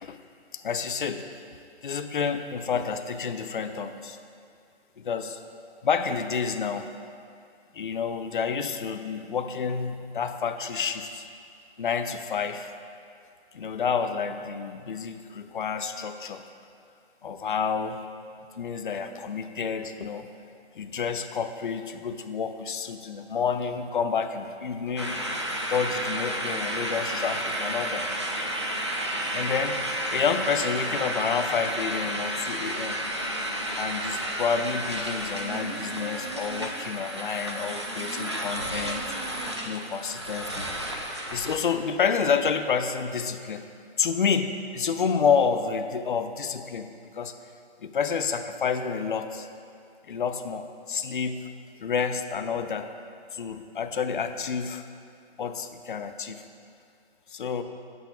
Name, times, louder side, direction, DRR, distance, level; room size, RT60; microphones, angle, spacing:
voice 1, 0.5-1.2 1.8-4.2 5.0-5.4 5.8-6.9 7.7-11.2 11.8-12.7 13.5-16.4 17.2-18.0 18.6-20.3 20.8-25.2 25.7-28.1 29.3-29.8 30.1-33.0 33.7-39.1 39.6-40.7 41.3-43.6 44.0-47.3 47.8-49.5 50.1-51.5 51.8-52.9 53.3-54.8 55.4-56.4 57.3-57.6, left 6 dB, 50° left, 8 dB, 0.5 m, -29 dB
sound 1, 25.0-41.6, right 1 dB, 25° right, 0.4 m, -32 dB
sound 2, 35.0-37.0 37.6-40.0 40.3-40.4, right 4 dB, 45° right, 0.9 m, -42 dB
17.0 x 8.1 x 2.3 m, 2.4 s
hypercardioid pair, 175°, 33 cm